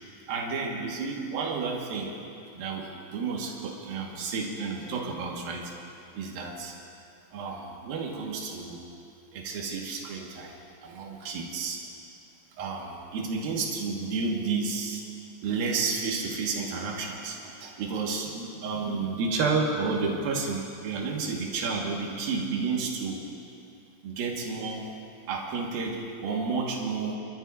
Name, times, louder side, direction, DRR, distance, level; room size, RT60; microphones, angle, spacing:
voice 1, 0.3-2.2 2.5-5.7 6.1-6.7 7.3-8.9 9.3-10.6 10.8-11.8 12.6-15.0 15.4-23.2 24.0-25.0 25.3-27.2, right 4 dB, 65° right, -1 dB, 3.1 m, -31 dB
28.5 x 13.0 x 2.6 m, 2.6 s
omnidirectional pair, 4.9 m